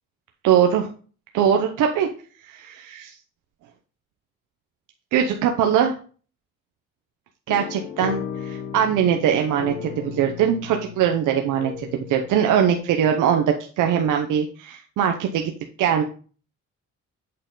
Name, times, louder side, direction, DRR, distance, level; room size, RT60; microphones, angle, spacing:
voice 1, 0.4-0.9 1.3-2.1 2.5-3.2 5.1-5.9 7.5-15.5 15.8-16.0, right 8 dB, 85° right, 4 dB, 0.8 m, -21 dB
sound 1, 7.5-13.0, left 8 dB, 85° left, 1.1 m, -36 dB
8.5 x 4.4 x 3.8 m, 0.39 s
cardioid pair, 90°, 30 cm